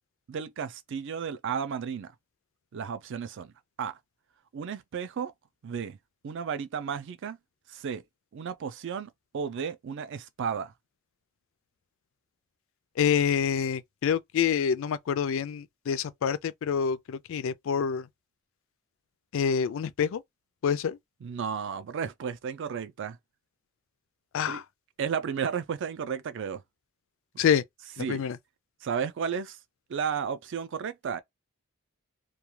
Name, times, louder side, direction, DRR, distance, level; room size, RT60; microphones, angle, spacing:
voice 1, 0.3-2.1 2.7-3.5 3.8-4.0 4.5-5.3 5.6-6.0 6.2-7.4 7.7-8.0 8.3-10.7 21.2-23.2 24.5-24.6 25.0-26.6 28.0-28.2 28.8-29.6 29.9-31.2, right 7 dB, 55° right, 0.4 m, -33 dB
voice 2, 13.0-18.1 19.3-20.2 20.6-21.0 24.3-24.6 27.4-27.6 28.1-28.4, left 7 dB, 60° left, 0.3 m, -27 dB
2.3 x 2.2 x 3.0 m
head